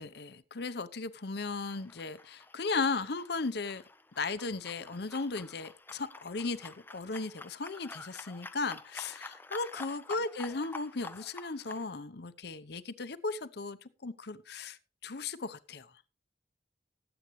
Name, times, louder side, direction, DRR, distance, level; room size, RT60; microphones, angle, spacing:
voice 1, 0.0-3.8 4.2-15.9, left 3 dB, 65° left, 0.8 m, -36 dB
sound 1, 1.4-11.9, left 3 dB, 10° left, 0.5 m, -49 dB
19.0 x 8.0 x 3.2 m
head